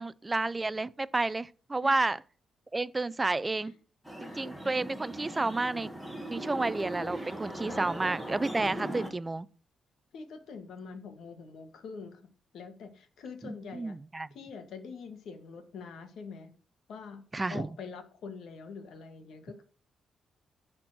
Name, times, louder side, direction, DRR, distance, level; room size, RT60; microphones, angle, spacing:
voice 1, 0.0-2.2 2.7-3.7 4.2-5.9 6.3-9.5 13.4-14.3 17.3-17.7, right 2 dB, 15° right, 0.4 m, -31 dB
voice 2, 1.8-2.2 4.2-4.6 7.7-7.8 9.0-9.1 10.1-12.2 12.5-13.9 14.3-16.5 16.9-17.2 17.5-19.6, left 5 dB, 70° left, 1.8 m, -45 dB
sound 1, 4.0-9.1, right 1 dB, ahead, 1.6 m, -39 dB
11.0 x 4.3 x 6.1 m
cardioid pair, 145°, 0 cm